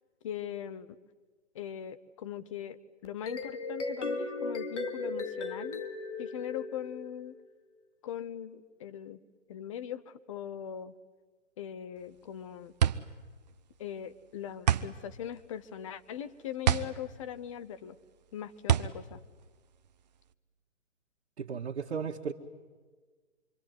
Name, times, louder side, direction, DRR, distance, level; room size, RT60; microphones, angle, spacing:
voice 1, 0.2-1.0 1.5-5.8 6.2-7.4 8.0-9.2 9.5-10.9 11.6-12.7 13.8-18.0 18.3-19.2, left 9 dB, 25° left, 0.8 m, -40 dB
sound 1, 3.0-7.4, left 3 dB, 65° left, 3.1 m, -37 dB
sound 2, 12.0-20.3, right 9 dB, 35° right, 0.7 m, -31 dB
voice 2, 21.4-22.3, right 6 dB, 55° right, 1.9 m, -35 dB
26.0 x 24.0 x 9.5 m
hypercardioid pair, 145°, 38 cm